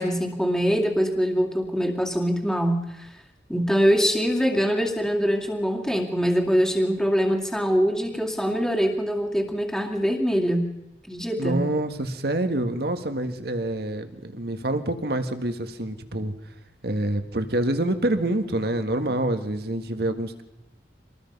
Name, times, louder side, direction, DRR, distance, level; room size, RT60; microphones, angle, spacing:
voice 1, 0.0-3.1 3.5-10.7 11.1-11.6, equal, 5° left, 1 dB, 2.3 m, -23 dB
voice 2, 11.4-16.3 16.8-20.4, right 1 dB, 60° right, 8 dB, 1.8 m, -26 dB
25.5 x 20.0 x 5.5 m, 0.91 s
head